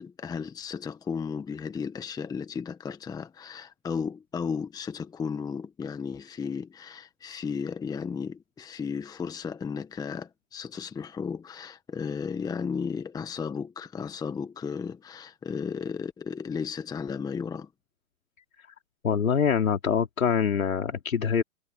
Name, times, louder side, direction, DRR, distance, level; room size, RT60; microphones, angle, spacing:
voice 1, 0.0-17.7, left 6 dB, 10° left, 1.3 m, -34 dB
voice 2, 19.0-21.4, left 7 dB, 80° left, 3.6 m, -24 dB
hypercardioid pair, 130°, 41 cm